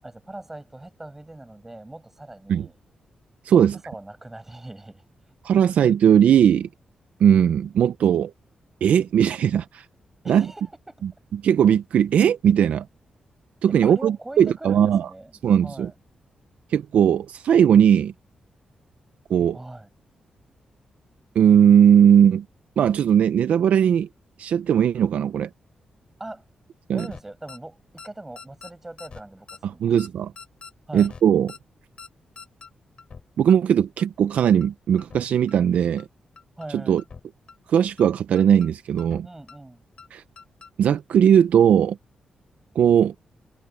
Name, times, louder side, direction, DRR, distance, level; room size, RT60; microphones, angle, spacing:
voice 1, 0.0-2.8 3.5-5.4 10.2-11.0 13.7-15.3 15.6-15.9 19.5-19.9 26.2-26.4 26.9-30.0 30.9-31.1 36.6-37.0 39.2-39.8, right 2 dB, 15° right, 7.0 m, -41 dB
voice 2, 3.4-3.7 5.4-6.7 7.2-8.3 8.8-9.8 10.3-10.5 11.4-12.9 13.6-15.1 15.4-15.9 16.7-18.1 19.3-19.6 21.4-22.4 22.8-24.1 24.4-25.5 26.9-27.1 29.6-30.3 30.9-31.5 33.4-36.1 36.7-37.0 37.7-39.3 40.1-40.2 40.8-42.0 42.8-43.1, right 9 dB, 80° right, 0.5 m, -18 dB
sound 1, 27.0-27.2 27.5-27.6 28.0-28.1 28.4-28.7 29.0-29.2 29.5-29.6 30.0-30.1 30.4-30.7 31.0-31.2 31.5-31.6 32.0-32.1 32.4-32.7 33.0-33.2 33.5-33.6 34.0-34.1 34.4-34.7 35.0-35.2 35.5-35.6 36.0-36.1 36.4-36.7 37.0-37.2 37.5-37.6 38.0-38.1 38.4-38.7 39.0-39.2 39.5-39.6 40.0-40.1 40.4-40.7 41.0-41.1, left 5 dB, 45° left, 4.6 m, -43 dB
wide cardioid pair, 130°, 2 cm